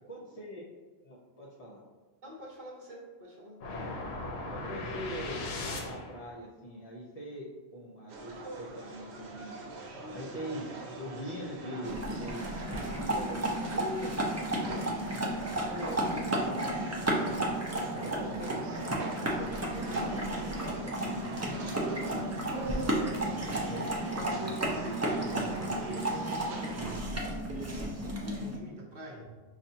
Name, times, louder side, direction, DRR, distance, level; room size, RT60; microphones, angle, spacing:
voice 1, 0.1-0.6 1.0-1.8 4.5-9.7 10.1-14.9 15.6-16.7 17.1-20.9 21.2-22.3 23.4-23.8, equal, 45° left, -4 dB, 0.6 m, -43 dB
voice 2, 2.2-3.6 21.8-22.0 22.8-23.9 24.7-27.1 27.3-29.2, right 1 dB, 50° right, -2 dB, 0.8 m, -46 dB
sound 1, 3.6-6.3, left 2 dB, 75° left, 0.9 m, -38 dB
sound 2, 8.1-27.0, right 3 dB, 90° right, 0.9 m, -42 dB
sound 3, 11.8-28.6, right 1 dB, 25° right, 0.3 m, -33 dB
5.5 x 2.4 x 2.7 m, 1.3 s
omnidirectional pair, 1.1 m